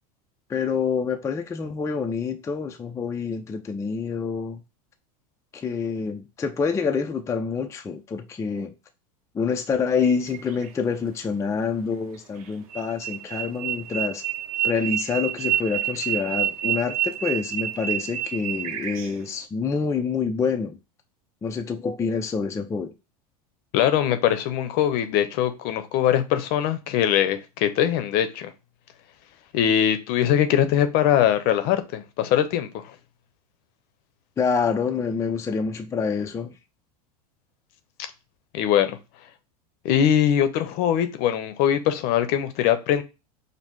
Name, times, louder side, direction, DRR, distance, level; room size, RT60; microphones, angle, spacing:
voice 1, 0.5-4.6 5.5-8.7 9.3-14.2 14.6-20.8 21.4-22.9 34.4-36.6, left 5 dB, 15° left, 0.4 m, -27 dB
sound 1, 10.0-10.7 12.4-19.3, right 12 dB, 70° right, 0.7 m, -29 dB
voice 2, 23.7-28.5 29.5-32.8 38.5-39.0 39.8-43.0, left 10 dB, 50° left, 0.7 m, -22 dB
5.4 x 2.1 x 3.1 m
hypercardioid pair, 100°, 20 cm